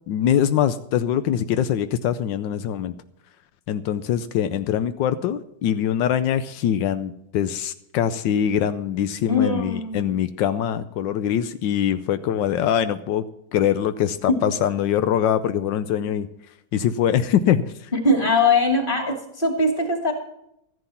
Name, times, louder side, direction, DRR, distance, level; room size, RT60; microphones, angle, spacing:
voice 1, 0.1-2.9 3.7-13.2 13.5-16.3 16.7-17.9, left 9 dB, 85° left, 11 dB, 1.4 m, -23 dB
voice 2, 9.3-10.1 14.3-14.4 17.9-20.1, left 2 dB, 30° left, 3 dB, 2.8 m, -21 dB
14.0 x 11.0 x 5.7 m, 0.78 s
omnidirectional pair, 1.9 m